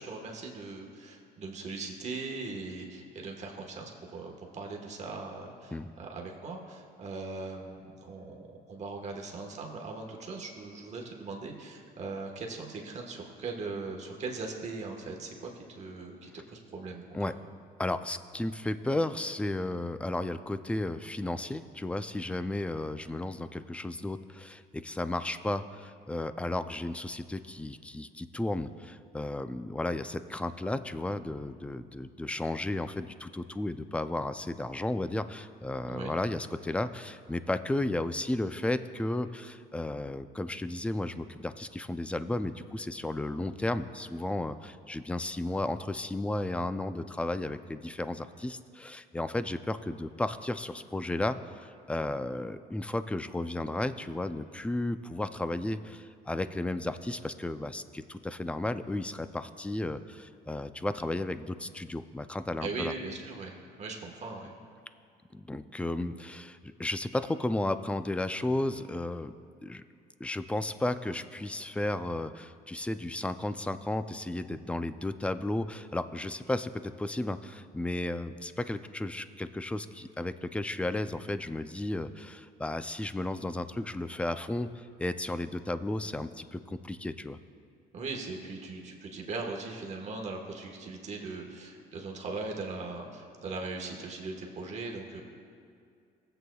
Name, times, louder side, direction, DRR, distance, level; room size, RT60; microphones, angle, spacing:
voice 1, 0.0-17.2 35.8-36.1 62.6-64.5 87.9-95.2, right 3 dB, 40° right, 1 dB, 1.3 m, -39 dB
voice 2, 17.8-62.9 65.3-69.3 69.6-69.8 70.2-87.4, left 2 dB, 5° left, 11 dB, 0.3 m, -34 dB
21.5 x 7.9 x 2.3 m, 2.3 s
cardioid pair, 110°, 17 cm